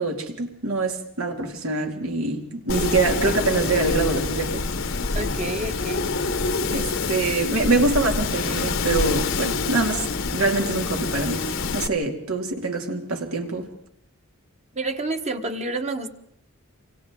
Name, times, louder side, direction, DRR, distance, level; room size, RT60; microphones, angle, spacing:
voice 1, 0.0-4.6 6.7-11.4 11.7-13.7, right 3 dB, 85° right, 3 dB, 2.7 m, -25 dB
Wind, 2.7-11.9, left 4 dB, 65° left, 1.0 m, -26 dB
voice 2, 5.1-6.1 14.7-16.1, right 2 dB, 35° right, 6 dB, 1.3 m, -29 dB
28.0 x 24.5 x 3.8 m, 0.71 s
head